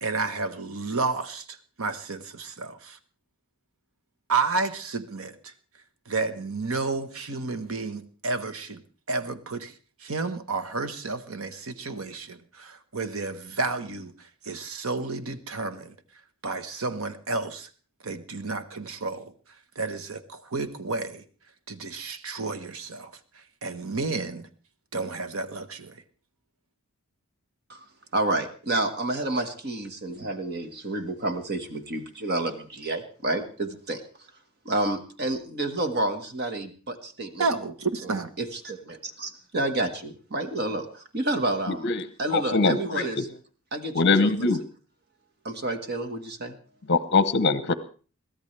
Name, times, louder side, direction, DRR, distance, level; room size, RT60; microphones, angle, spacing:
voice 1, 0.0-3.0 4.3-5.5 6.1-8.8 9.1-9.7 10.0-15.9 16.4-17.7 18.0-19.3 19.7-21.2 21.7-24.5 24.9-26.0 37.4-38.3, right 3 dB, 70° right, 1.2 m, -31 dB
voice 2, 28.1-34.0 34.6-37.5 38.0-41.9 42.2-43.3 43.7-44.3 45.4-46.6, right 2 dB, 45° right, 1.6 m, -30 dB
voice 3, 41.8-43.2 43.9-44.6 46.9-47.7, left 3 dB, 50° left, 0.8 m, -23 dB
22.5 x 14.5 x 3.3 m
head